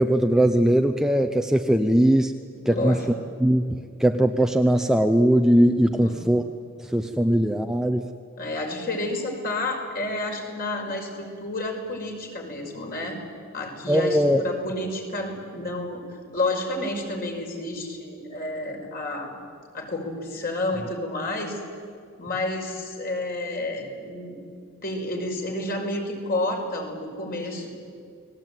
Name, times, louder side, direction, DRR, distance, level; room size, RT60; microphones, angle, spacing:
voice 1, 0.0-2.3 2.6-3.0 3.4-6.4 6.9-8.1 13.9-14.4, right 1 dB, ahead, 5 dB, 0.8 m, -20 dB
voice 2, 2.7-3.1 6.0-6.3 8.4-13.2 13.5-19.4 19.7-21.6 22.2-24.4 24.8-27.7, left 2 dB, 45° left, 2 dB, 5.4 m, -30 dB
30.0 x 21.0 x 9.2 m, 2.2 s
head